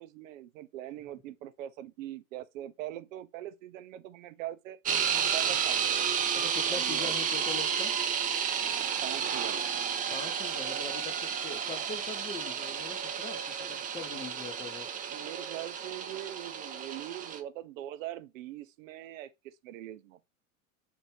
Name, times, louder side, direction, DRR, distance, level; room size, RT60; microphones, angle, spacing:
voice 1, 0.0-4.8 5.3-6.1 6.7-7.1 9.0-9.7 15.1-20.2, right 13 dB, 65° right, 0.6 m, -42 dB
sound 1, 4.9-17.4, right 7 dB, 20° right, 0.4 m, -31 dB
voice 2, 6.3-8.0 10.1-14.9, left 4 dB, 15° left, 0.7 m, -42 dB
3.4 x 2.6 x 3.1 m
figure-of-eight pair, 80°, 43 cm